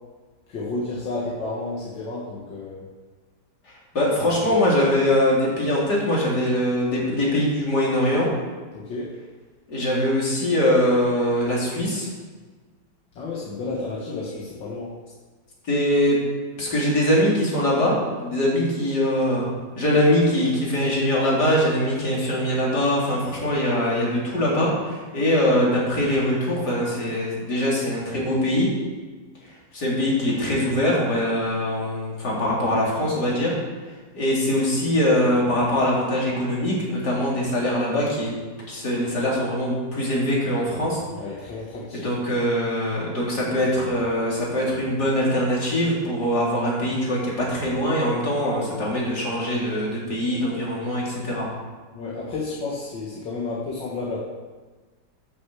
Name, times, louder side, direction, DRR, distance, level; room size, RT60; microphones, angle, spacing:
voice 1, 0.5-2.8 8.7-9.1 13.2-14.9 41.1-42.1 51.9-54.2, left 3 dB, 85° left, -6 dB, 2.4 m, -31 dB
voice 2, 3.9-8.3 9.7-12.1 15.7-16.2 16.6-19.5 19.8-28.7 29.7-33.5 34.1-38.3 38.7-41.0 41.9-51.5, left 1 dB, 60° left, -5 dB, 3.8 m, -22 dB
10.5 x 6.7 x 7.6 m, 1.4 s
omnidirectional pair, 1.9 m